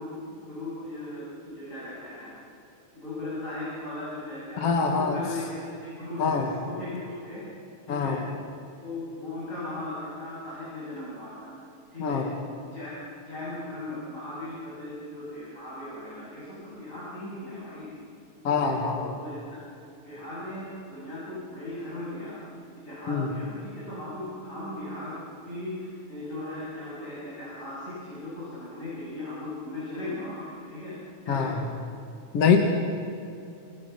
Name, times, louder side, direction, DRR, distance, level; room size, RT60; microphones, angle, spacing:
voice 1, 0.0-2.3 3.0-7.4 7.9-8.2 8.8-11.5 11.9-12.2 12.6-17.9 18.5-18.7 19.2-19.6 20.0-22.4 22.8-25.1 25.5-31.0 31.2-31.7, left 1 dB, 25° left, -7 dB, 7.6 m, -37 dB
voice 2, 4.6-5.2 6.2-6.5 7.9-8.2 12.0-12.3 18.4-19.1 23.1-23.3 31.3-31.6 32.3-32.6, left 5 dB, 55° left, 3 dB, 2.7 m, -24 dB
28.0 x 27.0 x 5.8 m, 2.6 s
omnidirectional pair, 3.3 m